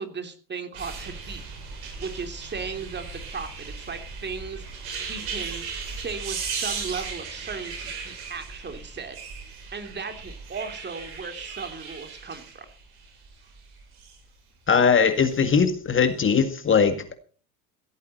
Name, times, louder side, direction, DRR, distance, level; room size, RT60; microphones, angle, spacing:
voice 1, 0.0-1.4 2.0-4.6 5.0-5.6 6.0-9.2 9.7-12.6, right 5 dB, 20° right, 7 dB, 3.1 m, -36 dB
sound 1, 0.7-14.2 15.0-15.6 16.1-16.3, right 5 dB, 50° right, 7.7 m, -37 dB
voice 2, 14.7-17.1, left 6 dB, 25° left, 9 dB, 1.9 m, -20 dB
16.5 x 13.0 x 4.3 m, 0.40 s
hypercardioid pair, 85°, 47 cm